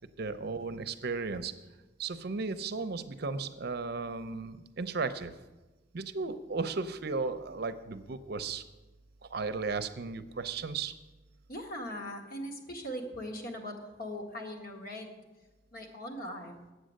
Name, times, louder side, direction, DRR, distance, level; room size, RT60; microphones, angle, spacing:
voice 1, 0.2-1.5 2.0-5.3 5.9-8.6 9.2-10.9, right 4 dB, 60° right, 11 dB, 0.6 m, -35 dB
voice 2, 11.5-15.1 15.7-16.6, equal, 55° left, 2 dB, 1.6 m, -40 dB
9.0 x 7.9 x 6.5 m, 1.1 s
head